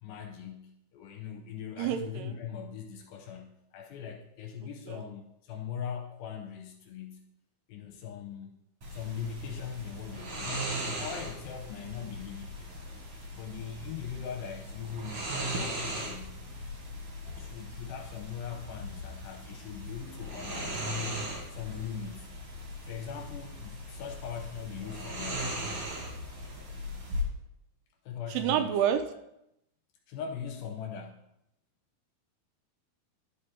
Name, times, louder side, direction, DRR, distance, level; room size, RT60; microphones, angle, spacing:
voice 1, 0.0-7.3 7.7-8.5 8.9-12.8 13.3-16.4 17.4-22.3 22.8-25.6 28.1-28.8 30.1-31.2, left 7 dB, 75° left, 3 dB, 2.4 m, -41 dB
voice 2, 1.8-2.3 4.9-5.0 28.3-29.0, right 10 dB, 85° right, 8 dB, 2.6 m, -28 dB
sound 1, 8.8-27.2, equal, 50° right, 2.1 m, -38 dB
11.0 x 5.1 x 4.4 m, 0.81 s
omnidirectional pair, 4.8 m